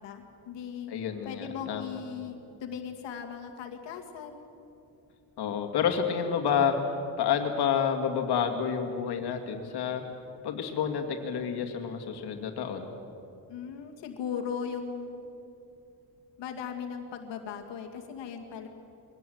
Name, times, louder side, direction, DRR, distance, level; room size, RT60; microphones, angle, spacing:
voice 1, 0.0-0.9 1.2-4.3 13.5-15.2 16.4-18.7, left 7 dB, 90° left, 3 dB, 2.3 m, -38 dB
voice 2, 0.9-1.9 5.4-10.0 10.4-12.9, left 7 dB, 65° left, 4 dB, 2.4 m, -29 dB
22.5 x 17.5 x 7.9 m, 2.7 s
cardioid pair, 180°, 42 cm